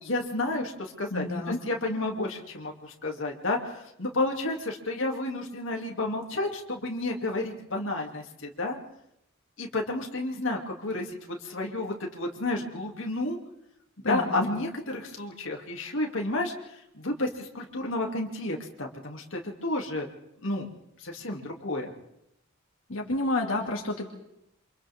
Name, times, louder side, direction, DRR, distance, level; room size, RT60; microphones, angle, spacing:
voice 1, 0.0-8.8 9.6-13.4 14.1-20.1 20.4-20.7 21.0-21.9, left 2 dB, 65° left, 0 dB, 2.8 m, -31 dB
voice 2, 1.1-1.6 14.0-14.5 22.9-24.1, left 2 dB, 85° left, 1 dB, 2.4 m, -29 dB
28.5 x 26.0 x 3.7 m, 0.80 s
head